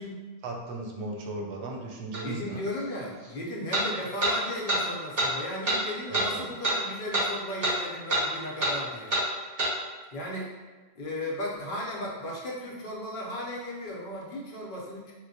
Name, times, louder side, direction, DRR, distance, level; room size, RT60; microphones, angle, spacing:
voice 1, 0.4-2.6 6.1-6.5, right 2 dB, 90° right, 0 dB, 0.9 m, -36 dB
sound 1, 2.1-2.2 3.7-3.9 4.2-4.4 4.7-4.8 5.2-5.3 5.7-5.8 6.1-6.3 6.6-6.8 7.1-7.3 7.6-7.8 8.1-8.3 8.6-8.8 9.1-9.3 9.6-9.7, right 1 dB, 50° right, 0.9 m, -25 dB
voice 2, 2.2-9.2 10.1-10.5 10.9-15.1, left 1 dB, 55° left, -3 dB, 0.8 m, -36 dB
4.4 x 2.1 x 2.6 m, 1.3 s
omnidirectional pair, 1.1 m